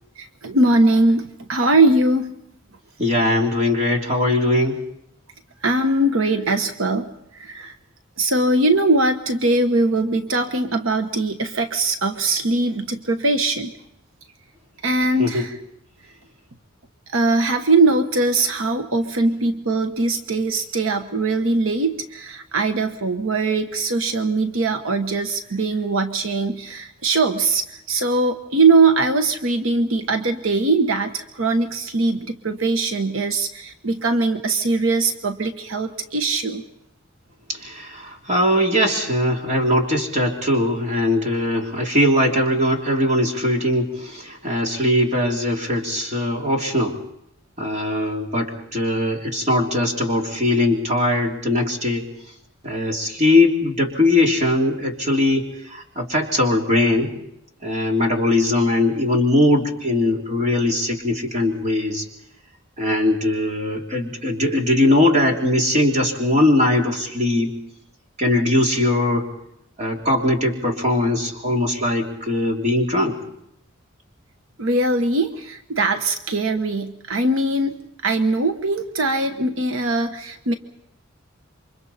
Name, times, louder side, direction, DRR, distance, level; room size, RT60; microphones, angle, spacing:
voice 1, 0.2-2.3 5.6-7.7 8.2-13.7 14.8-15.5 17.1-36.6 74.6-77.8 78.0-80.5, right 2 dB, 90° right, 7 dB, 1.2 m, -21 dB
voice 2, 3.0-4.8 15.2-15.4 37.5-47.0 47.6-52.0 52.6-57.2 57.6-62.0 62.8-67.5 68.2-69.2 69.8-73.2, left 1 dB, 35° right, 1 dB, 3.2 m, -20 dB
28.5 x 24.5 x 4.2 m, 0.79 s
head